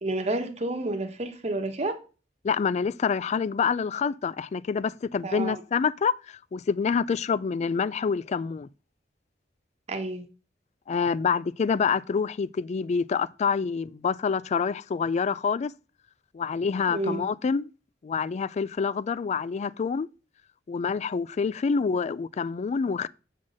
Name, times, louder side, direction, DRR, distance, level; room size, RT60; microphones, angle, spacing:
voice 1, 0.0-2.0 5.2-5.6 9.9-10.2 16.9-17.2, right 2 dB, 35° right, 1.1 m, -30 dB
voice 2, 2.4-6.1 6.5-8.7 10.9-15.7 16.3-17.7 18.0-20.1 20.7-23.1, left 5 dB, 40° left, 0.3 m, -27 dB
7.4 x 4.1 x 6.2 m
head